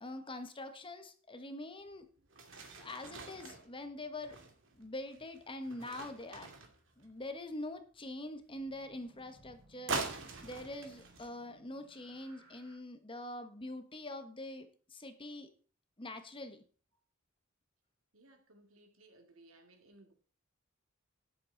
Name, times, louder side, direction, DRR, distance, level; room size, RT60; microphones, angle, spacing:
voice 1, 0.0-2.1 2.8-4.4 4.7-6.5 7.0-15.5 16.0-16.6, left 1 dB, 25° left, 1.4 m, -44 dB
sound 1, 1.9-2.0 2.3-7.3 9.9-11.3, right 3 dB, 65° right, 2.6 m, -43 dB
sound 2, 5.6-7.0 8.5-12.8, right 1 dB, 30° right, 7.3 m, -64 dB
voice 2, 18.1-20.1, right 2 dB, 90° right, 2.5 m, -61 dB
12.5 x 11.0 x 4.1 m
head